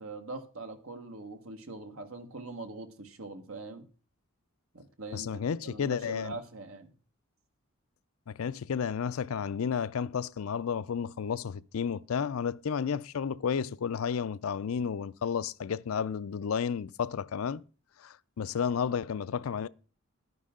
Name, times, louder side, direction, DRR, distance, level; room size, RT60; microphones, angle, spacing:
voice 1, 0.0-3.9 4.7-6.9, right 3 dB, 80° right, 1.5 m, -43 dB
voice 2, 5.1-6.4 8.3-17.6 18.0-19.7, left 7 dB, 85° left, 0.4 m, -32 dB
11.5 x 9.5 x 3.7 m
head